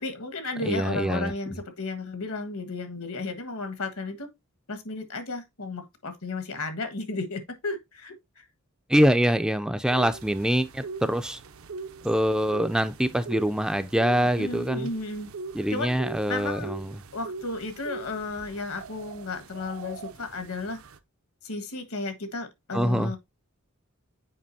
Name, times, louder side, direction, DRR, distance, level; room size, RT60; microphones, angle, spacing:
voice 1, 0.0-4.3 4.7-8.4 14.2-15.3 15.7-16.0 16.3-16.7 17.1-20.8 21.4-23.2, left 3 dB, 80° left, 1.5 m, -33 dB
voice 2, 0.6-1.3 8.9-11.4 12.0-14.9 15.5-16.9 22.7-23.1, equal, 5° right, 0.3 m, -24 dB
sound 1, 9.9-21.0, right 4 dB, 70° right, 0.6 m, -41 dB
7.6 x 5.0 x 2.7 m
head